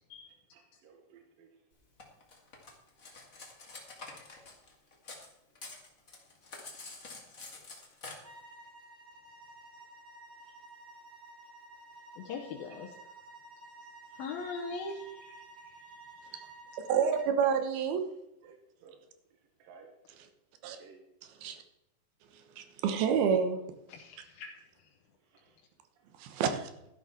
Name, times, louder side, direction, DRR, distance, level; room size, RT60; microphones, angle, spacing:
voice 1, 0.5-1.5 6.7-7.2 10.4-10.5 13.2-13.3 18.4-19.0 19.3-19.9 20.7-21.1 25.2-25.6, right 5 dB, 75° right, 2 dB, 3.0 m, -59 dB
Cutlery silverware, 2.0-5.3 5.5-8.1, left 3 dB, 30° left, 1.9 m, -47 dB
sound 1, 8.2-17.4, right 2 dB, 30° right, 4.3 m, -52 dB
voice 2, 12.2-12.9 14.1-16.5 23.9-25.0, left 4 dB, 80° left, 0 dB, 2.8 m, -42 dB
voice 3, 16.9-18.1 18.4-18.5 20.6-20.8 21.4-21.6 22.3-23.6 26.2-26.7, right 7 dB, 90° right, 8 dB, 3.1 m, -29 dB
12.5 x 11.5 x 4.4 m, 0.88 s
omnidirectional pair, 4.2 m